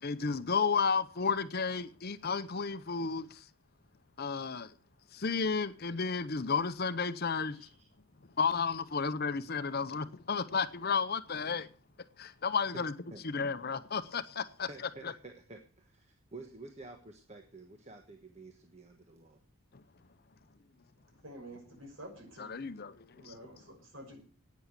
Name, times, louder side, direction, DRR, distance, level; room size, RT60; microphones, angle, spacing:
voice 1, 0.0-3.4 4.2-4.7 5.1-7.6 8.4-11.7 12.2-12.9 13.2-14.7 22.4-22.9 23.3-23.4, left 5 dB, 45° left, 0.7 m, -32 dB
voice 2, 7.5-7.9 12.7-12.8 13.1-13.2 14.4-19.4, right 3 dB, 30° right, 1.3 m, -50 dB
voice 3, 21.2-22.6 23.1-24.2, right 1 dB, 60° right, 6.0 m, -49 dB
11.0 x 9.4 x 8.2 m
head